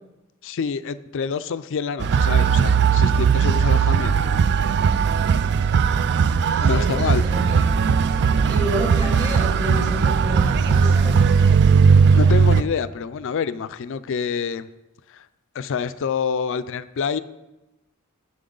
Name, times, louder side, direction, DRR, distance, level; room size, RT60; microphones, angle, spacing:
voice 1, 0.4-4.3 6.6-7.2 12.1-14.7 15.1-15.3 15.5-17.2, left 6 dB, 60° left, 13 dB, 0.4 m, -27 dB
sound 1, 2.0-12.6, right 6 dB, 50° right, 0.3 m, -18 dB
voice 2, 6.5-7.8 8.5-11.2, right 1 dB, 35° right, -3 dB, 3.3 m, -30 dB
10.0 x 7.6 x 3.9 m, 0.98 s
head